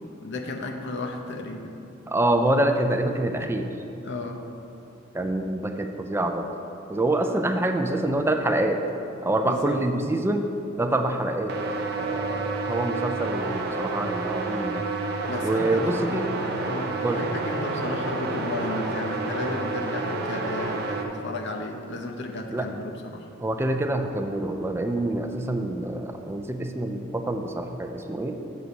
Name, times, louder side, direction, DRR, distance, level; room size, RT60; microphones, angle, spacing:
voice 1, 0.2-1.7 4.0-4.5 9.4-9.8 15.3-16.2 16.6-23.3, left 2 dB, 60° left, 3 dB, 0.7 m, -34 dB
voice 2, 2.1-3.7 5.1-6.5 6.9-8.8 9.2-10.5 10.8-14.9 15.4-16.3 17.0-17.2 22.5-22.7 23.4-28.4, right 1 dB, 10° right, 5 dB, 0.3 m, -26 dB
sound 1, 11.5-21.0, right 3 dB, 50° right, 0.6 m, -29 dB
7.4 x 4.1 x 6.8 m, 2.8 s
head